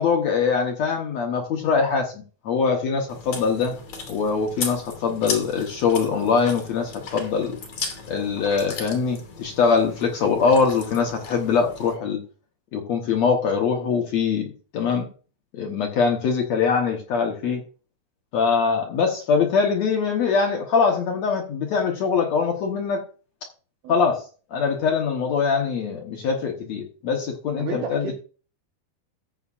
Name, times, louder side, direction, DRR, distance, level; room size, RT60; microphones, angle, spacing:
voice 1, 0.0-3.7 4.1-7.6 8.1-12.2 12.7-15.0 15.5-17.6 18.3-23.0 23.9-24.2 24.5-28.1, left 5 dB, 70° left, 2 dB, 1.7 m, -23 dB
Chewing mastication, 3.1-11.9, left 4 dB, 50° left, 3.8 m, -36 dB
voice 2, 27.6-28.1, right 7 dB, 75° right, 3 dB, 2.7 m, -32 dB
14.5 x 8.5 x 2.5 m, 0.37 s
omnidirectional pair, 4.5 m